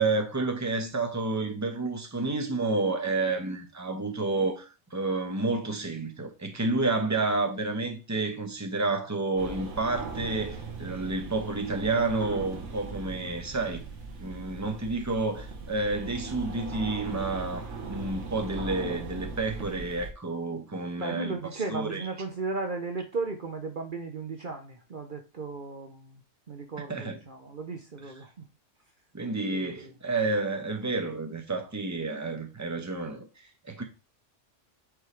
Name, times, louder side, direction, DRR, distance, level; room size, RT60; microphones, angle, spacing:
voice 1, 0.0-13.8 14.2-21.4 21.7-22.0 26.9-27.2 29.1-33.3 33.6-33.8, right 3 dB, 15° right, 1.1 m, -30 dB
sound 1, 9.4-20.1, right 4 dB, 85° right, 1.5 m, -39 dB
voice 2, 21.0-26.2 26.5-28.4 29.5-29.9, right 3 dB, 45° right, 1.0 m, -35 dB
8.2 x 5.2 x 3.3 m
omnidirectional pair, 1.2 m